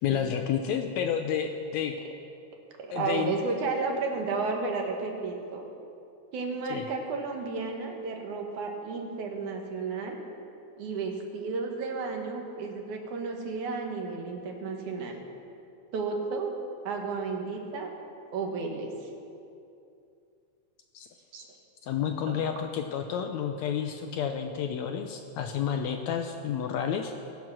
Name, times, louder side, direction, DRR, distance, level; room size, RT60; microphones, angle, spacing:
voice 1, 0.0-1.9 2.9-3.3 6.7-6.8 20.9-21.1 21.8-27.1, left 8 dB, 75° left, 5 dB, 1.7 m, -30 dB
voice 2, 2.8-5.6 6.3-10.2 10.8-15.2 15.9-16.5 16.8-17.9 18.3-18.9 21.3-21.5 22.3-22.4, right 4 dB, 70° right, 2 dB, 2.9 m, -32 dB
22.5 x 7.6 x 6.2 m, 2.6 s
omnidirectional pair, 3.7 m